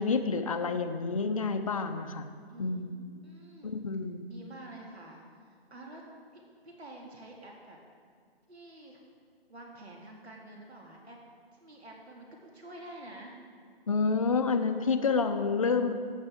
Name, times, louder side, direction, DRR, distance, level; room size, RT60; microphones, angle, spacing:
voice 1, 0.0-2.3 2.6-3.0 3.6-4.3 13.9-15.9, left 4 dB, 35° left, 7 dB, 0.5 m, -29 dB
voice 2, 2.5-3.8 4.3-6.0 6.3-7.8 8.5-9.0 9.5-11.2 11.5-13.3, right 2 dB, 85° right, -1 dB, 2.1 m, -48 dB
13.5 x 8.0 x 3.6 m, 2.1 s
hypercardioid pair, 160°, 32 cm